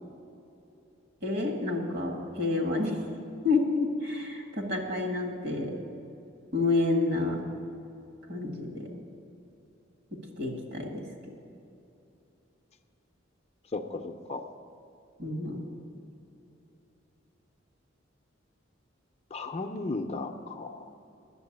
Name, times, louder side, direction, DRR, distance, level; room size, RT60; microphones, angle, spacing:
voice 1, 1.2-2.9 3.4-5.7 6.5-7.4 8.3-8.9 10.4-11.0 15.2-15.6, left 3 dB, 55° right, 2 dB, 1.8 m, -29 dB
voice 2, 13.7-14.4 19.3-20.9, left 3 dB, 35° left, 6 dB, 0.5 m, -35 dB
10.5 x 7.4 x 8.5 m, 2.7 s
head